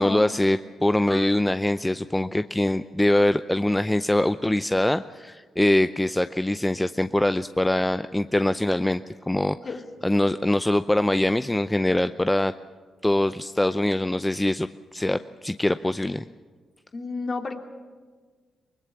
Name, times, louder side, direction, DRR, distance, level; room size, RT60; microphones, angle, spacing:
voice 1, 0.0-9.6 10.0-12.5 13.0-16.2, left 1 dB, 15° left, 12 dB, 0.6 m, -23 dB
voice 2, 16.9-17.6, left 3 dB, 45° left, 4 dB, 2.7 m, -30 dB
23.5 x 20.5 x 7.0 m, 1.5 s
hypercardioid pair, 45°, 0 cm